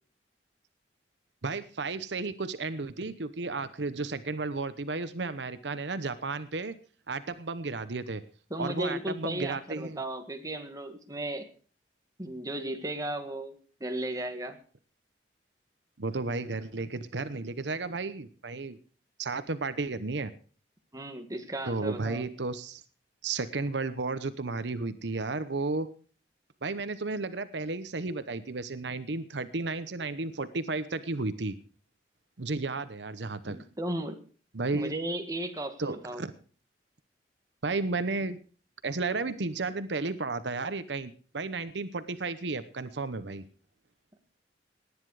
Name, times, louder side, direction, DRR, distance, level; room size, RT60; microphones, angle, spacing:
voice 1, 1.4-6.7 7.1-8.2 8.6-10.0 16.0-18.8 19.2-20.3 21.7-22.8 23.2-25.9 26.6-31.5 32.4-33.6 34.5-34.9 35.8-36.3 37.6-38.4 38.8-43.5, right 3 dB, 80° right, 13 dB, 0.9 m, -33 dB
voice 2, 8.5-11.5 12.2-13.6 13.8-14.6 20.9-22.2 33.5-34.2 34.7-36.2, right 1 dB, 20° right, 5 dB, 1.8 m, -35 dB
18.5 x 9.9 x 4.8 m, 0.41 s
head